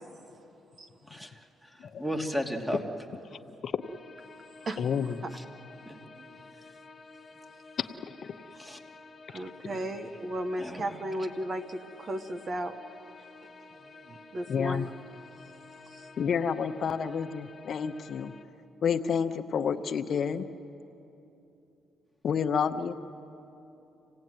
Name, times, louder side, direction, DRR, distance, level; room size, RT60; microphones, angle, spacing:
voice 1, 1.0-2.8 5.3-5.4 5.8-6.0 6.5-6.8 7.3-7.4 8.6-8.8 10.6-11.2, equal, 5° right, 2 dB, 2.5 m, -36 dB
sound 1, 3.8-18.4, left 3 dB, 35° left, 1.7 m, -51 dB
voice 2, 4.8-5.2 7.8-7.9 8.2-8.3 14.5-14.9 16.2-18.3 18.8-20.4 22.2-22.9, left 7 dB, 55° left, 8 dB, 0.8 m, -29 dB
voice 3, 9.3-12.7 14.1-14.9 15.9-16.1, right 1 dB, 45° right, 9 dB, 1.3 m, -35 dB
27.0 x 17.5 x 9.3 m, 2.9 s
cardioid pair, 90°, 0 cm